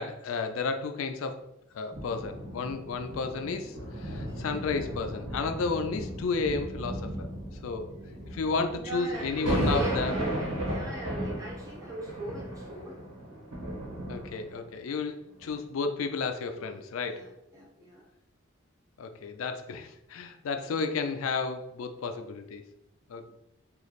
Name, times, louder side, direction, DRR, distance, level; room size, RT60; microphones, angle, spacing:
voice 1, 0.0-1.4 1.7-7.3 7.6-7.9 8.3-10.2 14.1-17.3 19.0-22.6 23.1-23.3, left 4 dB, 80° left, 7 dB, 0.4 m, -32 dB
sound 1, 1.9-14.7 15.4-15.5, equal, 80° right, 1.3 m, -35 dB
voice 2, 7.9-8.3 8.8-13.0 15.4-15.6 16.6-18.1, right 2 dB, 15° right, -2 dB, 0.7 m, -40 dB
3.1 x 2.4 x 4.0 m, 0.86 s
head